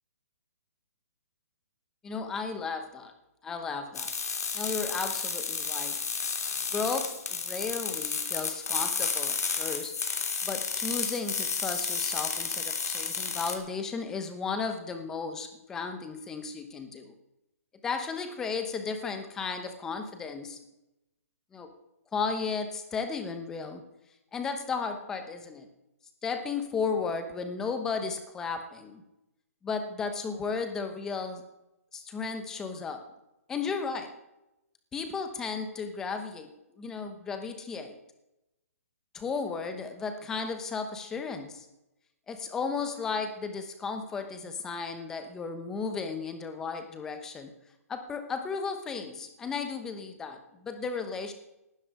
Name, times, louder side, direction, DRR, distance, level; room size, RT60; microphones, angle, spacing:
voice 1, 2.0-3.1 3.4-4.1 4.5-6.0 6.7-9.9 10.4-17.1 17.8-20.6 21.5-21.7 22.1-23.8 24.3-25.7 26.2-29.0 29.6-31.4 31.9-33.0 33.5-34.1 34.9-36.5 36.8-38.0 39.1-41.7 42.3-47.5 47.9-51.3, left 5 dB, 5° left, 7 dB, 0.9 m, -34 dB
sound 1, 3.9-13.5, left 5 dB, 90° left, 3.0 m, -32 dB
18.5 x 12.0 x 4.9 m, 0.91 s
hypercardioid pair, 175°, 8 cm